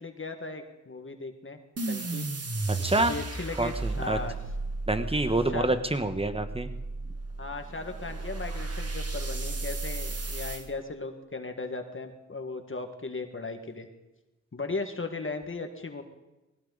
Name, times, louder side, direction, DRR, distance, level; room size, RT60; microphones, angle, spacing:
voice 1, 0.0-2.3 3.0-4.3 5.5-5.8 7.4-13.9 14.5-16.0, left 3 dB, 45° left, 5 dB, 1.8 m, -37 dB
sound 1, 1.8-10.6, right 3 dB, 55° right, 1.9 m, -34 dB
voice 2, 2.7-3.1 3.6-4.2 4.9-6.7, right 2 dB, 20° right, 9 dB, 1.3 m, -27 dB
19.5 x 17.5 x 4.1 m, 1.0 s
cardioid pair, 55°, 29 cm